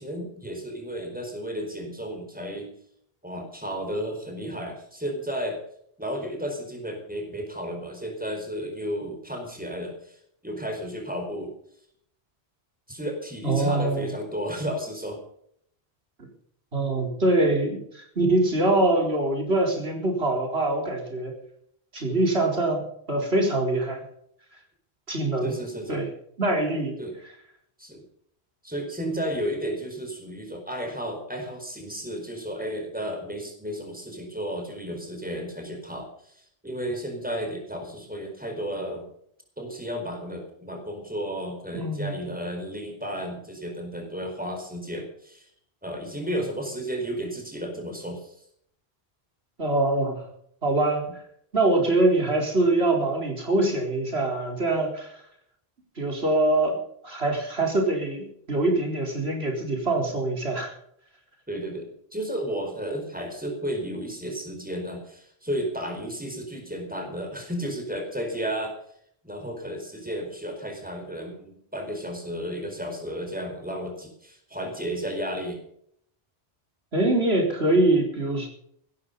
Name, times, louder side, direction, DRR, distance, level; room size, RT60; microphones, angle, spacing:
voice 1, 0.0-2.7 3.2-5.6 6.0-10.2 10.4-11.5 12.9-15.2 22.1-22.2 25.4-26.0 27.0-27.2 27.8-28.0 28.6-39.1 39.6-45.5 45.8-48.3 61.5-68.8 69.2-75.6, equal, 10° right, 3 dB, 4.6 m, -33 dB
voice 2, 13.4-14.1 16.2-16.3 16.7-21.3 21.9-22.8 23.1-24.0 25.1-25.6 25.9-26.1 26.4-27.0 41.7-42.2 49.6-50.2 50.6-51.0 51.5-55.1 56.0-56.8 57.0-60.7 76.9-78.5, right 2 dB, 80° right, 1 dB, 4.5 m, -24 dB
16.0 x 13.0 x 5.4 m, 0.67 s
omnidirectional pair, 1.1 m